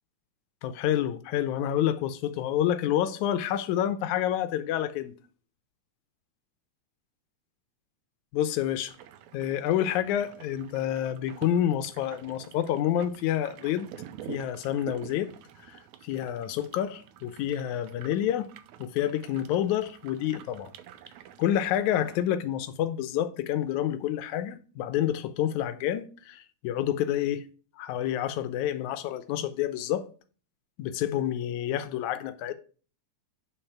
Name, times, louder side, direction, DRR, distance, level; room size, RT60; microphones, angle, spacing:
voice 1, 0.6-5.1 8.3-8.9 9.3-13.9 14.3-15.3 15.7-18.5 18.8-20.7 21.4-27.4 27.8-30.1 30.8-32.5, left 11 dB, 85° left, 2.1 m, -28 dB
sound 1, 8.9-22.2, right 10 dB, 80° right, 2.0 m, -48 dB
9.1 x 4.0 x 5.7 m
omnidirectional pair, 3.4 m